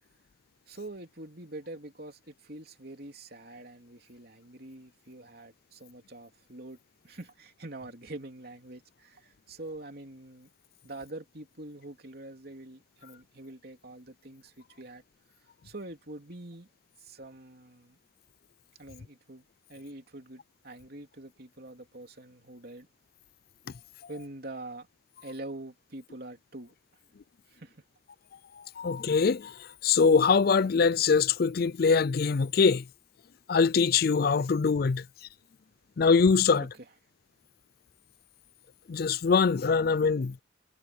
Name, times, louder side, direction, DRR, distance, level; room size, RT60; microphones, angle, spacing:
voice 1, 0.7-6.8 7.0-10.5 10.8-15.0 15.6-16.7 17.0-18.0 18.8-22.9 24.1-24.9 25.2-26.7 27.5-27.8 36.5-36.9, right 2 dB, 55° right, 3.2 m, -45 dB
voice 2, 28.8-32.8 33.5-35.0 36.0-36.7 38.9-40.4, left 5 dB, 50° left, 0.4 m, -23 dB
head